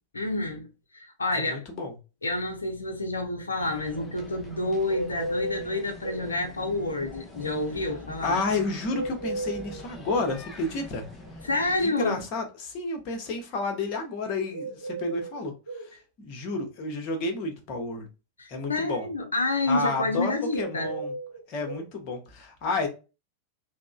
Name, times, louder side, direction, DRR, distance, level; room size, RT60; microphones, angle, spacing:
voice 1, 0.1-0.7 0.9-1.6 2.2-8.4 11.4-12.2 18.4-20.9, left 2 dB, 75° left, 0.5 m, -29 dB
voice 2, 1.3-1.9 8.2-11.0 11.8-18.1 18.5-19.1 19.7-21.1 21.5-22.9, left 3 dB, 40° left, 0.9 m, -31 dB
sound 1, 3.6-11.9, left 1 dB, 10° left, 0.7 m, -45 dB
sound 2, 4.9-6.3 8.9-10.3 14.5-15.9 20.5-21.9, right 2 dB, 75° right, 0.6 m, -34 dB
3.5 x 2.1 x 2.2 m
figure-of-eight pair, 90°, 0 cm